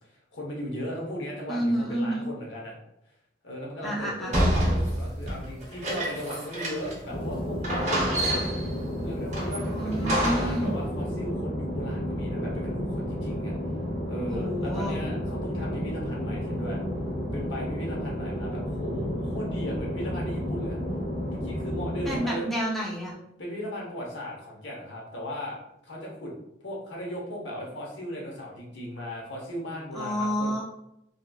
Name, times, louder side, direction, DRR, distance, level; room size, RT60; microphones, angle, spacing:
voice 1, 0.0-2.7 3.4-8.4 9.0-13.5 14.0-16.8 17.3-20.8 21.3-22.5 23.4-26.3 26.6-30.5, equal, 85° left, -2 dB, 0.9 m, -37 dB
voice 2, 1.5-2.3 3.8-4.8 9.8-10.8 14.3-15.0 22.1-23.1 29.9-30.6, equal, ahead, -5 dB, 0.5 m, -29 dB
sound 1, 4.3-7.1 7.3-7.4 7.6-8.7 9.3-10.7, equal, 40° right, 0.8 m, -28 dB
sound 2, 7.1-22.2, equal, 40° left, 1.3 m, -31 dB
2.8 x 2.4 x 2.3 m, 0.80 s
head